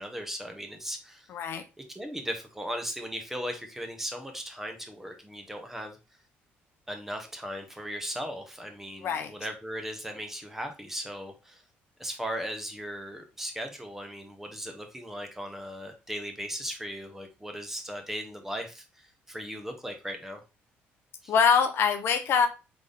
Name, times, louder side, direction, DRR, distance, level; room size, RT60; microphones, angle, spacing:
voice 1, 0.0-1.3 1.9-6.0 6.9-11.6 12.0-18.8 19.3-20.4 21.2-21.3, equal, 5° right, 5 dB, 1.0 m, -37 dB
voice 2, 1.3-1.6 9.0-9.3 21.3-22.5, left 6 dB, 60° left, 7 dB, 0.7 m, -24 dB
3.9 x 3.6 x 3.4 m, 0.29 s
cardioid pair, 100°, 5 cm